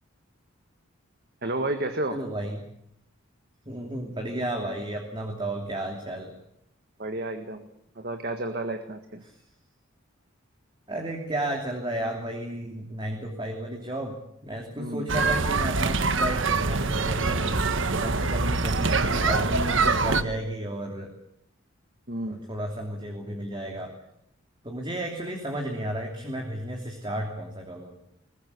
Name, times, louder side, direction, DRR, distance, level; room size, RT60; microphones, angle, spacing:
voice 1, 1.4-2.2 7.0-7.7 8.0-9.2 14.8-15.1 22.1-22.4, right 1 dB, 45° right, 7 dB, 1.8 m, -31 dB
voice 2, 2.1-2.6 3.7-6.3 9.2-9.3 10.9-14.2 14.4-17.6 17.9-21.1 22.3-23.9 24.6-27.9, right 1 dB, 20° right, 1 dB, 3.0 m, -33 dB
sound 1, 15.1-20.2, right 3 dB, 65° right, 1.4 m, -24 dB
22.5 x 20.5 x 8.1 m, 0.76 s
head